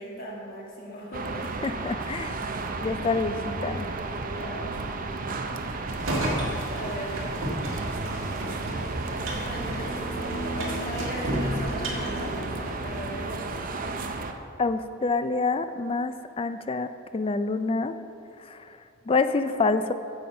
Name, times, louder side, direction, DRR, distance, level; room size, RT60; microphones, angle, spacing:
voice 1, 0.0-1.5 4.4-4.7 6.7-7.2 9.1-13.9, equal, 45° left, -3 dB, 1.6 m, -38 dB
sound 1, 1.1-14.3, right 3 dB, 40° right, 0.6 m, -33 dB
voice 2, 1.6-2.3 2.8-3.9 14.6-17.9 18.4-18.6 19.1-19.9, left 3 dB, 25° left, 11 dB, 0.3 m, -27 dB
sound 2, 5.9-13.1, right 1 dB, 75° right, 1.8 m, -33 dB
sound 3, 8.9-13.6, right 1 dB, 65° left, 2.2 m, -39 dB
9.2 x 7.0 x 5.7 m, 2.6 s
head